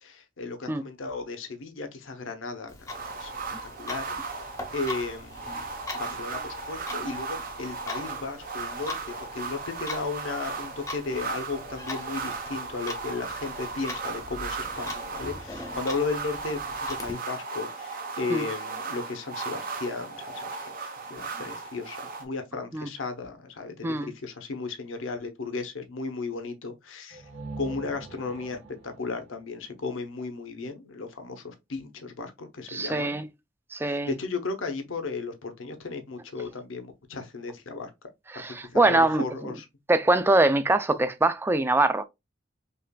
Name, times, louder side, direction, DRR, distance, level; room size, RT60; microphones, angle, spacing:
voice 1, 0.0-3.3 3.6-4.5 4.7-5.6 5.9-27.3 27.6-33.2 33.9-37.9 38.7-39.7, left 4 dB, 75° left, 0.7 m, -35 dB
Clock, 2.7-17.1, left 3 dB, 15° left, 0.7 m, -42 dB
sound 1, 2.9-22.2, right 4 dB, 45° right, 0.7 m, -36 dB
sound 2, 27.1-30.8, right 2 dB, 75° right, 1.2 m, -44 dB
voice 2, 32.7-33.2 33.7-34.1 38.3-39.2 39.9-42.0, right 2 dB, 10° right, 0.3 m, -23 dB
5.4 x 2.4 x 2.2 m
head